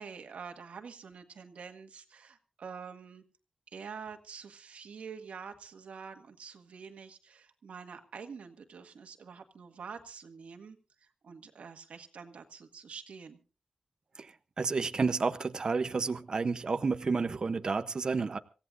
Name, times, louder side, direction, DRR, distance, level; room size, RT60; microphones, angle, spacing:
voice 1, 0.0-3.2 3.7-13.4, right 6 dB, 80° right, 6 dB, 1.7 m, -47 dB
voice 2, 14.6-18.4, right 4 dB, 40° right, 10 dB, 0.7 m, -30 dB
26.0 x 16.0 x 2.5 m, 0.34 s
wide cardioid pair, 170°, 2 cm